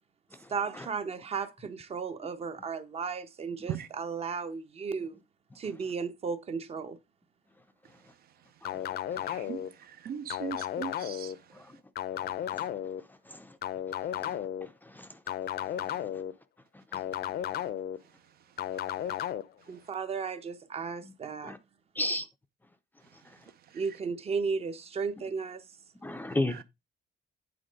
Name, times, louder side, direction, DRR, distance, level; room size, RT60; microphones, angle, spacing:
voice 1, 0.5-5.2 5.6-7.0 19.7-21.5 23.7-25.6, right 5 dB, 35° right, 0.8 m, -34 dB
sound 1, 8.6-9.7 10.3-11.3 12.0-13.0 13.6-14.7 15.3-16.3 16.9-18.0 18.6-19.4, left 11 dB, 60° left, 0.6 m, -34 dB
voice 2, 9.3-9.6 10.0-11.3, right 8 dB, 60° right, 0.6 m, -37 dB
voice 3, 14.2-15.1 21.0-21.1 21.4-21.6 22.0-22.2 26.0-26.6, left 1 dB, 10° left, 0.5 m, -33 dB
8.8 x 3.9 x 5.2 m
cardioid pair, 175°, 18 cm